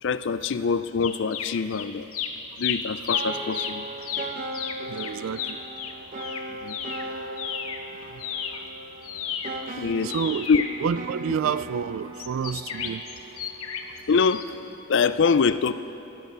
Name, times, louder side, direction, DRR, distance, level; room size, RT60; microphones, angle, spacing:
voice 1, 0.0-2.1 2.6-3.9 6.6-6.8 8.5-8.6 9.8-10.1 10.5-10.6 14.1-15.7, left 5 dB, 55° left, 13 dB, 0.4 m, -24 dB
sound 1, 1.0-1.9 2.1-7.8 8.1-11.4 12.1-14.0 14.3-14.4, left 8 dB, 80° left, 0.9 m, -33 dB
sound 2, 3.1-14.2, right 2 dB, 40° right, 0.8 m, -38 dB
voice 2, 4.9-5.6 8.1-8.2 10.0-10.5 10.8-13.0, right 7 dB, 65° right, 17 dB, 0.3 m, -29 dB
16.0 x 11.0 x 6.2 m, 3.0 s
head